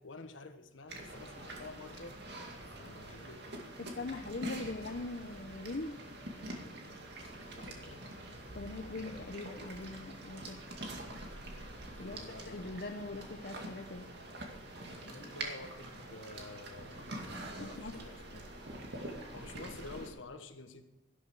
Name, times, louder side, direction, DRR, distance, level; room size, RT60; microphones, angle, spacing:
voice 1, 0.0-2.2 2.8-3.6 7.4-8.1 11.9-12.7 14.9-17.1 17.5-18.5 19.0-20.8, left 2 dB, 75° left, 8 dB, 1.4 m, -50 dB
sound 1, 0.9-20.1, right 1 dB, 55° right, 2.3 m, -45 dB
voice 2, 3.9-5.9 8.5-10.6 12.0-14.1 17.6-17.9, left 2 dB, 55° left, 4 dB, 0.8 m, -42 dB
12.5 x 12.0 x 4.8 m, 1.0 s
head